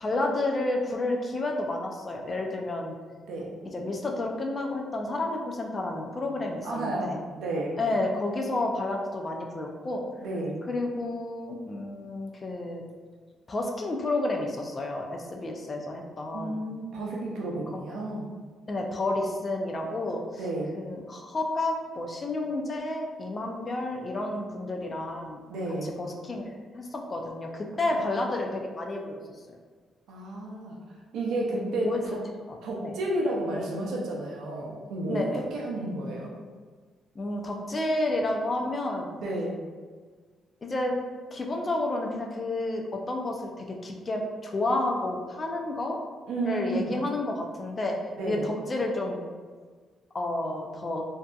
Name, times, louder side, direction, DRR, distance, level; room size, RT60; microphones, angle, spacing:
voice 1, 0.0-3.0 3.7-7.2 7.8-10.0 10.7-12.8 13.5-16.6 17.7-17.8 18.7-20.2 20.7-25.4 25.8-29.2 31.8-32.0 32.5-32.6 32.8-32.9 35.1-35.5 37.2-39.1 40.6-40.9 41.3-46.0 46.4-47.9 48.3-49.2 50.1-51.0, left 2 dB, 35° left, 1 dB, 0.3 m, -30 dB
voice 2, 6.6-7.8 10.2-10.6 16.3-18.3 20.4-20.7 25.5-25.9 27.8-28.3 30.1-30.8 31.1-32.2 32.6-36.3 39.1-39.6 46.3-46.9 48.2-48.5, right 1 dB, 75° right, -3 dB, 0.4 m, -31 dB
2.6 x 2.4 x 2.3 m, 1.5 s
cardioid pair, 90°, 0 cm